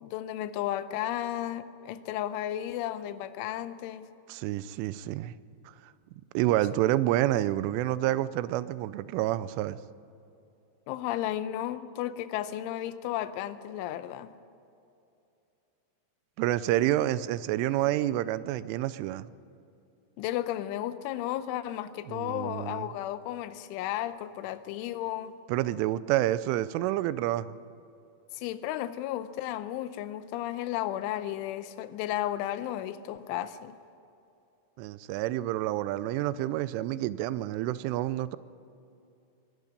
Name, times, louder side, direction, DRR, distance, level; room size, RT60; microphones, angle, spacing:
voice 1, 0.0-4.1 10.9-14.3 20.2-25.4 28.3-33.8, left 12 dB, 90° left, 13 dB, 3.2 m, -33 dB
voice 2, 4.3-5.4 5.8-5.9 6.3-9.8 16.4-19.3 22.1-22.9 25.5-27.6 34.8-38.4, right 14 dB, 90° right, 16 dB, 3.1 m, -28 dB
22.0 x 12.0 x 9.9 m, 2.7 s
omnidirectional pair, 5.5 m